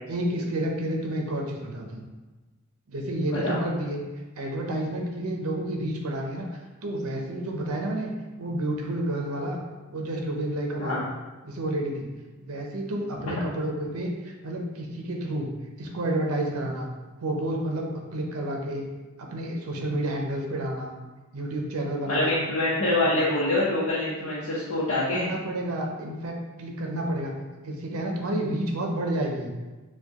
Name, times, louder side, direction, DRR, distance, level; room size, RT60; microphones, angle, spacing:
voice 1, 0.1-2.1 2.9-4.0 4.4-6.5 6.8-9.6 9.9-11.0 11.4-12.1 12.4-15.5 15.8-16.9 17.2-18.9 19.2-20.9 21.3-22.3 22.8-23.3 25.1-27.3 27.6-29.5, right 1 dB, 85° right, 1 dB, 0.6 m, -30 dB
voice 2, 3.3-3.6 10.8-11.0 22.1-25.3, left 2 dB, 75° left, -9 dB, 0.8 m, -25 dB
4.4 x 2.3 x 2.9 m, 1.2 s
head